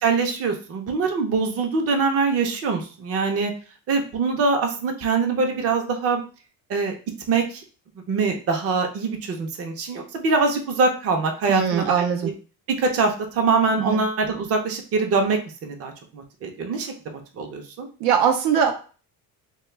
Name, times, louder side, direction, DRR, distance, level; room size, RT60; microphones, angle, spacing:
voice 1, 0.0-3.5 3.9-6.2 6.7-6.9 7.3-7.6 8.1-12.3 12.8-16.9 17.4-17.9, right 4 dB, 40° right, 4 dB, 0.6 m, -23 dB
voice 2, 11.5-12.3 13.8-14.0 18.0-18.7, right 7 dB, 90° right, 5 dB, 0.6 m, -21 dB
2.2 x 2.2 x 3.2 m, 0.37 s
cardioid pair, 130°, 38 cm